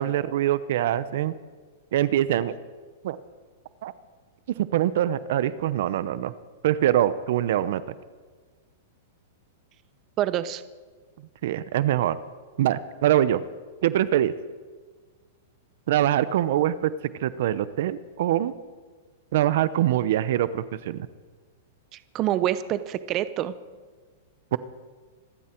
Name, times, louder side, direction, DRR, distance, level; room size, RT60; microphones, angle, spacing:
voice 1, 0.0-1.3 1.9-2.6 3.0-3.2 3.8-3.9 4.6-6.3 6.6-7.8 11.4-12.2 12.6-13.4 13.8-14.3 15.9-16.9 17.2-18.5 19.3-21.1 24.5-24.6, right 12 dB, 65° right, 15 dB, 0.8 m, -23 dB
voice 2, 10.2-10.6 21.9-23.5, right 12 dB, 35° right, 13 dB, 0.7 m, -26 dB
25.5 x 12.5 x 4.6 m, 1.4 s
hypercardioid pair, 140°, 0 cm